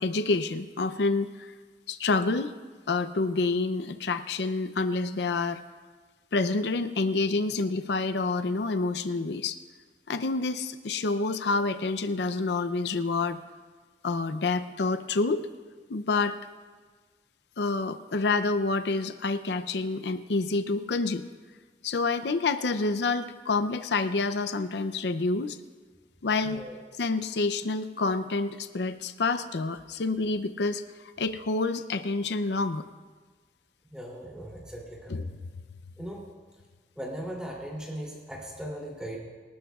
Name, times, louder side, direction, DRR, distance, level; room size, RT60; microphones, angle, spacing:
voice 1, 0.0-1.5 1.9-2.5 2.9-5.6 6.3-9.6 10.1-13.4 14.0-15.5 15.9-16.4 17.6-21.3 21.8-25.6 26.2-26.6 27.0-30.8 31.2-32.9 35.1-35.2, left 3 dB, 75° left, 11 dB, 0.5 m, -28 dB
voice 2, 26.4-26.8 33.9-35.2 36.0-36.2 37.0-39.2, right 1 dB, 5° right, -3 dB, 2.9 m, -38 dB
24.5 x 12.5 x 2.4 m, 1.4 s
head